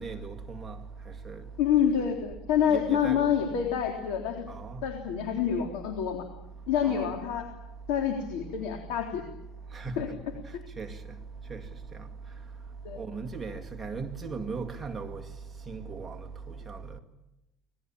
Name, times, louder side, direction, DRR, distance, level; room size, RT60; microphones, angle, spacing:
voice 1, 0.0-1.4 2.0-2.1 2.7-3.4 4.5-4.8 6.8-7.1 9.7-10.0 10.5-11.2 11.5-11.6 11.9-12.1 13.0-15.3 15.7-17.0, right 4 dB, 15° right, 2.3 m, -38 dB
voice 2, 1.6-4.5 4.8-6.2 6.7-7.4 7.9-9.2 10.0-10.1 12.8-13.0, left 8 dB, 70° left, 3.6 m, -27 dB
26.0 x 20.0 x 8.8 m
cardioid pair, 170°, 0 cm